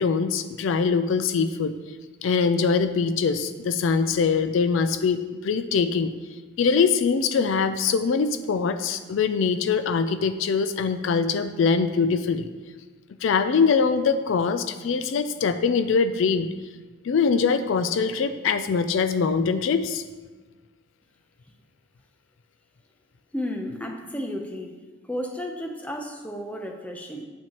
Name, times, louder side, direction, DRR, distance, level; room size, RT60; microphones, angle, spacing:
voice 1, 0.0-1.7 2.2-6.1 6.6-12.5 13.2-16.5 17.0-20.0, left 5 dB, 60° left, 10 dB, 0.3 m, -23 dB
voice 2, 23.3-24.7 25.1-27.3, equal, 5° left, 2 dB, 0.6 m, -32 dB
9.0 x 7.3 x 3.0 m, 1.3 s
head